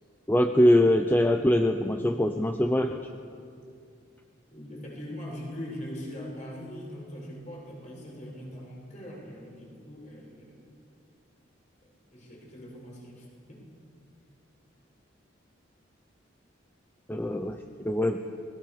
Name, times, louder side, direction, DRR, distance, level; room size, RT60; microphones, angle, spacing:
voice 1, 0.3-3.1 17.1-18.2, left 1 dB, 10° left, 5 dB, 0.8 m, -23 dB
voice 2, 4.5-10.7 12.1-13.6, equal, 40° left, -2 dB, 7.6 m, -41 dB
29.0 x 20.5 x 6.9 m, 2.4 s
head